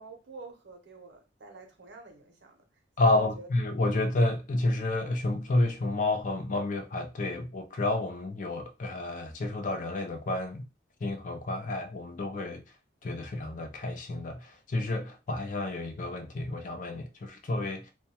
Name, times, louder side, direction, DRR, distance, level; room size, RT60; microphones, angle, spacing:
voice 1, 0.0-3.5, right 4 dB, 65° right, 0.6 m, -48 dB
voice 2, 3.0-10.7 11.0-12.6 13.0-17.9, left 2 dB, 45° left, 0.4 m, -30 dB
2.2 x 2.1 x 2.7 m
head